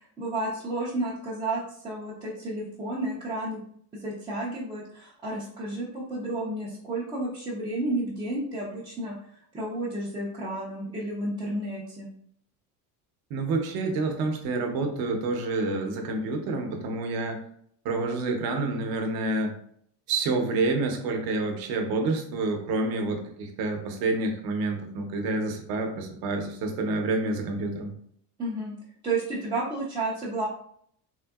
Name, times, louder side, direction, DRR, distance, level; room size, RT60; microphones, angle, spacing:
voice 1, 0.0-3.6 4.0-9.2 9.5-12.1 28.4-28.7 29.0-30.5, right 2 dB, 10° right, -9 dB, 0.4 m, -31 dB
voice 2, 13.3-17.4 17.8-19.5 20.1-27.9, right 3 dB, 50° right, 4 dB, 0.8 m, -28 dB
3.7 x 2.7 x 2.3 m, 0.64 s
cardioid pair, 165°, 45 cm